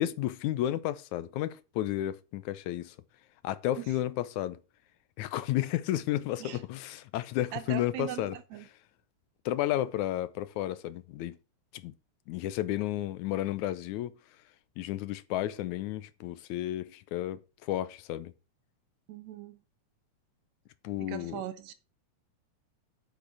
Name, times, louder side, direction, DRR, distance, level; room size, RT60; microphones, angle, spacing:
voice 1, 0.0-3.0 3.4-4.6 5.2-8.4 9.5-11.4 11.7-11.9 12.3-14.2 14.8-18.3 20.8-21.4, left 13 dB, 80° left, 2.1 m, -32 dB
voice 2, 7.5-8.7 19.1-19.6 21.0-21.7, right 12 dB, 75° right, 2.0 m, -40 dB
8.4 x 6.3 x 6.6 m
omnidirectional pair, 3.5 m